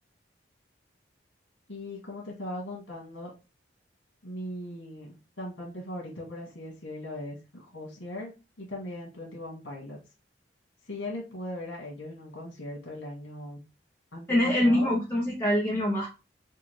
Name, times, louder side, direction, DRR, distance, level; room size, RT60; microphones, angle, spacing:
voice 1, 1.7-3.3 4.2-8.3 8.6-10.0 10.8-13.6 14.1-14.9, left 1 dB, 75° left, -2 dB, 1.6 m, -39 dB
voice 2, 14.3-16.1, left 1 dB, 15° left, -4 dB, 0.8 m, -24 dB
5.4 x 2.4 x 3.3 m, 0.29 s
head